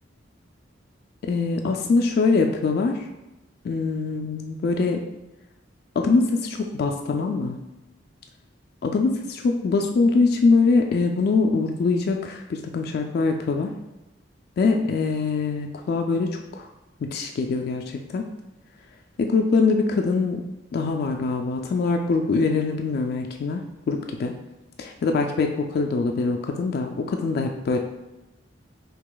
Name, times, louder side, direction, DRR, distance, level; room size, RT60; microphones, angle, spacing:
voice 1, 1.2-3.0 3.6-5.1 6.0-7.6 8.8-9.1 9.4-13.7 14.6-16.7 17.0-18.2 19.2-20.4 20.7-24.3 24.8-27.8, left 4 dB, 55° left, 3 dB, 0.3 m, -23 dB
3.0 x 2.8 x 3.8 m, 0.99 s
head